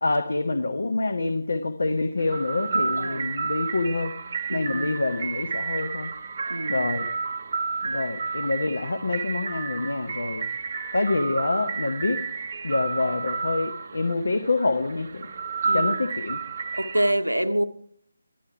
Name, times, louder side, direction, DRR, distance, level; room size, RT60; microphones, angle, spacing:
voice 1, 0.0-4.1 4.5-6.1 6.7-7.1 7.8-10.5 10.9-12.2 12.6-15.3 15.7-16.4, left 3 dB, 65° left, 0.9 m, -26 dB
sound 1, 2.2-17.1, right 4 dB, 40° right, 0.6 m, -31 dB
voice 2, 3.0-3.3 4.5-5.0 6.5-6.9 15.6-16.0 16.7-17.6, right 1 dB, 90° right, 0.9 m, -26 dB
12.0 x 10.5 x 4.7 m
figure-of-eight pair, 155°, 0 cm